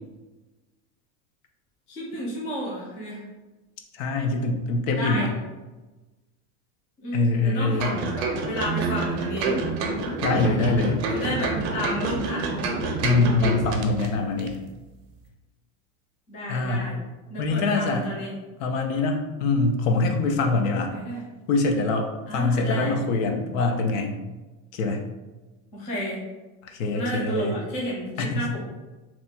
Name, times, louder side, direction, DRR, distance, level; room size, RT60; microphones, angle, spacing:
voice 1, 1.9-3.2 4.9-5.3 7.0-9.5 11.1-12.6 16.3-17.0 17.3-18.3 20.8-21.2 22.3-22.9 25.7-26.2 26.9-28.6, equal, 20° left, -5 dB, 0.3 m, -31 dB
voice 2, 3.9-5.3 7.1-7.9 10.2-11.0 13.0-14.6 16.5-16.9 17.4-18.1 18.6-20.9 21.5-24.2 24.7-25.0 26.6-27.5 28.2-28.4, left 3 dB, 70° left, 4 dB, 0.7 m, -24 dB
sound 1, 7.8-14.1 14.4-14.5, right 3 dB, 55° right, 0.6 m, -27 dB
2.9 x 2.2 x 4.1 m, 1.1 s
cardioid pair, 180°, 41 cm